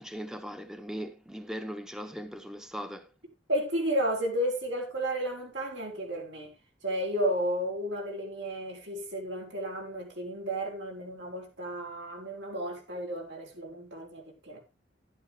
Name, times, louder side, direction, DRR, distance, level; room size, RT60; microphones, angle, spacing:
voice 1, 0.0-3.1, equal, 5° right, 1.0 m, -39 dB
voice 2, 3.5-6.5 6.8-14.6, right 1 dB, 85° right, 5.7 m, -32 dB
12.0 x 11.0 x 3.4 m
head